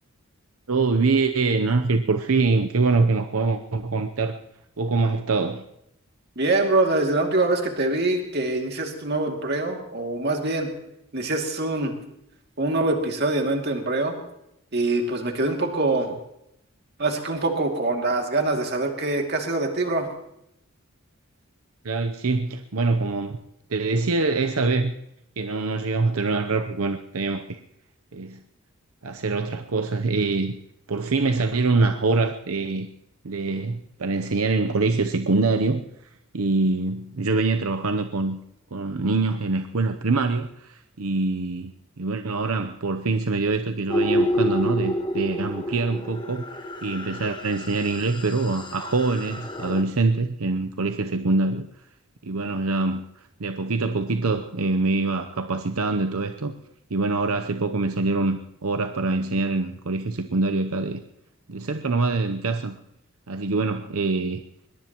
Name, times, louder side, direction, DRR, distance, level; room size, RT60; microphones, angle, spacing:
voice 1, 0.7-4.4 4.8-5.6 21.8-23.4 23.7-24.9 25.4-27.6 28.1-28.4 29.0-30.6 30.9-32.9 33.2-35.8 36.3-38.4 38.7-41.7 42.0-51.7 52.2-56.5 56.9-61.0 61.5-62.8 63.3-64.4, right 3 dB, 80° right, 7 dB, 0.8 m, -24 dB
voice 2, 6.4-10.7 11.1-11.9 12.6-14.2 14.7-16.1 17.0-20.1, right 2 dB, 50° right, 2 dB, 2.5 m, -24 dB
sound 1, 43.9-49.8, equal, 20° left, 1.3 m, -28 dB
22.0 x 21.5 x 3.0 m, 0.81 s
head